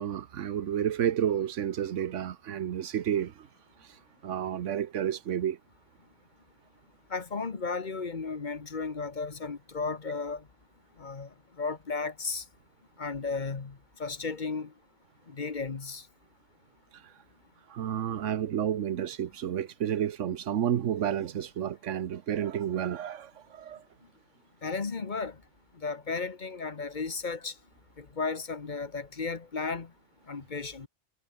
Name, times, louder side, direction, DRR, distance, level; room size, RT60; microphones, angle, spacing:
voice 1, 0.0-3.5 4.2-5.6 17.7-23.8, right 9 dB, 90° right, 1.2 m, -30 dB
voice 2, 7.1-10.4 11.0-11.3 11.6-12.4 13.0-13.7 14.0-14.7 15.3-16.0 24.6-25.3 25.8-27.5 28.0-29.9 30.3-30.9, left 4 dB, 40° left, 1.3 m, -34 dB
omnidirectional pair, 1.2 m